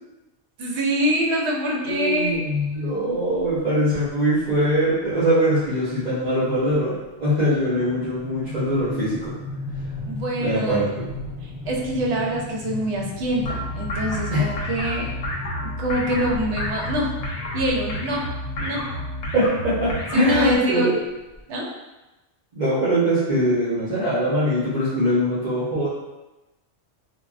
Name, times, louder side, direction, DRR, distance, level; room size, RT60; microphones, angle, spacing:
voice 1, 0.6-2.4 10.0-10.9 11.7-15.1 15.8-17.1 17.5-18.2 18.6-18.8 20.1-20.9 21.5-21.7, right 1 dB, 75° right, -2 dB, 0.9 m, -25 dB
voice 2, 1.8-9.3 10.4-10.9 14.3-14.5 19.3-21.0 22.5-25.9, equal, 40° right, -13 dB, 0.9 m, -22 dB
sound 1, 2.3-2.6 3.4-3.6 3.9-4.1 4.3-4.7 5.0-21.4, left 2 dB, 15° right, 0.3 m, -36 dB
sound 2, 13.4-20.6, left 1 dB, 75° left, 0.8 m, -30 dB
3.4 x 2.2 x 2.4 m, 1.0 s
omnidirectional pair, 1.2 m